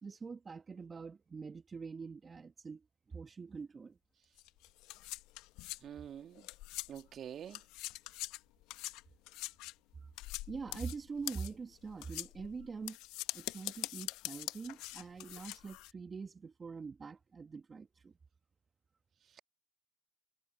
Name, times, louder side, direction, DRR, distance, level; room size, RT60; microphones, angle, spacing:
voice 1, 0.0-2.8 3.1-4.0 10.5-13.0 13.3-18.1, right 5 dB, 30° right, 1.4 m, -44 dB
sound 1, 4.4-7.2 7.5-15.9, left 19 dB, 70° left, 1.0 m, -44 dB
voice 2, 5.8-6.5 6.9-7.6 19.2-19.4, right 9 dB, 50° right, 2.6 m, -47 dB
hypercardioid pair, 65°, 0 cm